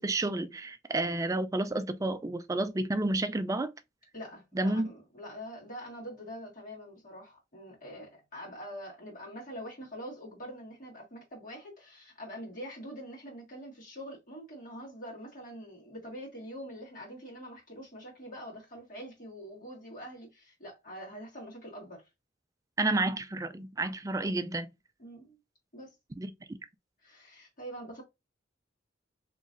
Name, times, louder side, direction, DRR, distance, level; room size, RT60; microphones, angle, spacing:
voice 1, 0.0-3.7 4.6-4.9 22.8-24.7 26.2-26.6, right 2 dB, 15° right, 0.3 m, -30 dB
voice 2, 4.1-22.0 25.0-25.4 25.7-25.9 27.0-28.0, equal, 45° left, 1.9 m, -44 dB
3.9 x 3.1 x 2.5 m
head